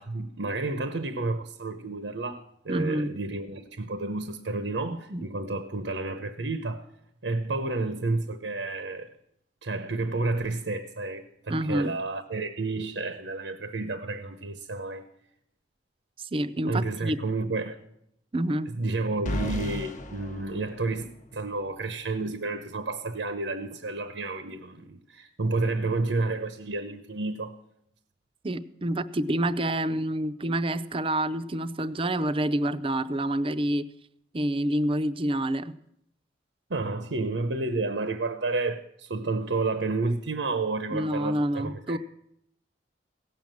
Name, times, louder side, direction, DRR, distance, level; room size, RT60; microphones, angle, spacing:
voice 1, 0.0-6.8 7.2-9.1 9.6-15.0 16.7-17.8 18.7-27.6 36.7-42.0, right 3 dB, 90° right, 0.9 m, -31 dB
voice 2, 2.7-3.1 4.9-5.3 11.5-11.9 16.2-17.2 18.3-18.7 28.4-33.9 34.3-35.8 40.9-42.0, right 1 dB, 30° right, 0.5 m, -28 dB
sound 1, 19.3-21.4, left 1 dB, 45° left, 0.9 m, -34 dB
16.5 x 7.2 x 7.6 m
head